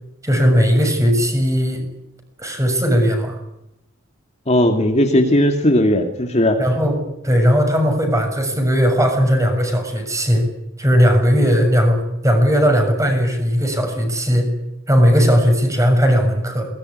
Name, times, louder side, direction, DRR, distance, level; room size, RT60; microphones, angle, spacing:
voice 1, 0.2-1.8 2.4-3.4 6.6-10.5 10.8-14.5 14.9-16.7, equal, 15° right, 4 dB, 6.8 m, -17 dB
voice 2, 4.5-6.6, left 1 dB, 30° left, 4 dB, 2.4 m, -16 dB
22.0 x 20.5 x 9.8 m, 0.89 s
head